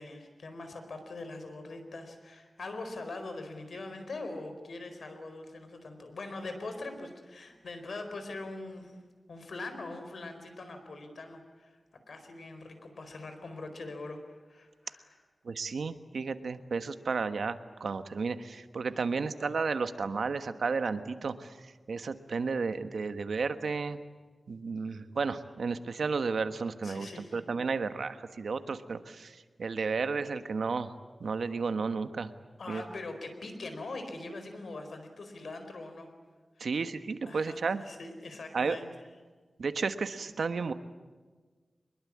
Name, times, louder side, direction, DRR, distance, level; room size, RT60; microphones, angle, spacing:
voice 1, 0.0-9.0 9.3-11.8 12.1-15.2 19.1-19.2 26.8-27.4 32.6-36.1 36.6-36.7 37.3-38.9, left 2 dB, 80° left, 6 dB, 4.5 m, -42 dB
voice 2, 15.4-24.0 24.5-30.9 31.2-32.3 32.7-32.8 36.6-37.8 38.5-38.8 39.6-40.7, right 4 dB, 90° right, 10 dB, 1.3 m, -33 dB
24.5 x 22.0 x 8.7 m, 1.4 s
wide cardioid pair, 105°, 0 cm